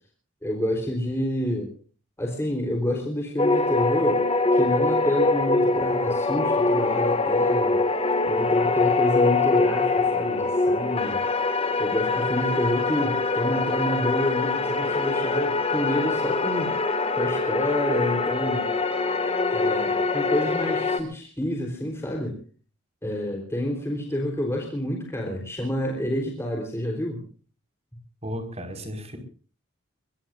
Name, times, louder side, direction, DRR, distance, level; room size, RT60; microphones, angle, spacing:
voice 1, 0.4-1.7 2.2-4.2 4.5-7.8 8.2-11.2 11.8-16.7 17.1-18.7 19.5-22.4 23.0-27.2, left 1 dB, 10° left, 1 dB, 3.8 m, -28 dB
sound 1, 3.4-21.0, left 3 dB, 30° left, 2.0 m, -23 dB
voice 2, 28.2-29.2, equal, 30° right, 6 dB, 5.3 m, -34 dB
24.0 x 23.5 x 2.6 m, 0.41 s
head